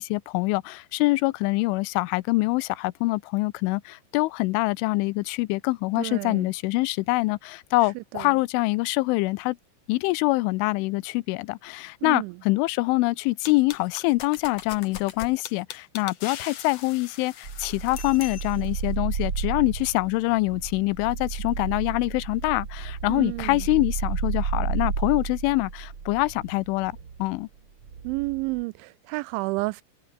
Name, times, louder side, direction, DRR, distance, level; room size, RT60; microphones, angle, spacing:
voice 1, 0.0-9.6 9.9-26.9 27.2-27.5, left 22 dB, 90° left, 3.1 m, -25 dB
voice 2, 6.0-6.5 8.1-8.3 12.0-12.3 23.1-23.6 28.0-29.8, right 23 dB, 85° right, 2.8 m, -30 dB
sound 1, 13.4-18.8, left 9 dB, 60° left, 1.8 m, -41 dB
sound 2, 17.4-27.3 27.8-28.6, right 6 dB, 35° right, 2.5 m, -32 dB
omnidirectional pair, 5.6 m